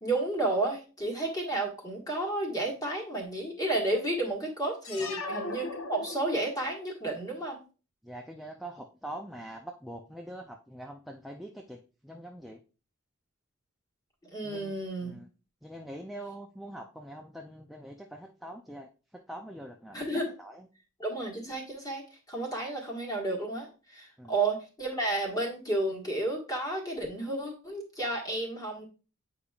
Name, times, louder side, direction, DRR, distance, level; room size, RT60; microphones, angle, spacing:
voice 1, 0.0-7.6 14.3-15.2 19.9-20.3 21.0-28.9, right 2 dB, 20° left, -1 dB, 1.5 m, -32 dB
sound 1, 4.8-6.7, left 3 dB, 80° left, 0.9 m, -38 dB
voice 2, 8.0-12.6 14.4-14.7 15.0-15.3 15.6-20.0 20.4-20.7 24.2-24.3, right 1 dB, ahead, 1 dB, 0.4 m, -44 dB
8.5 x 4.9 x 2.4 m, 0.34 s
head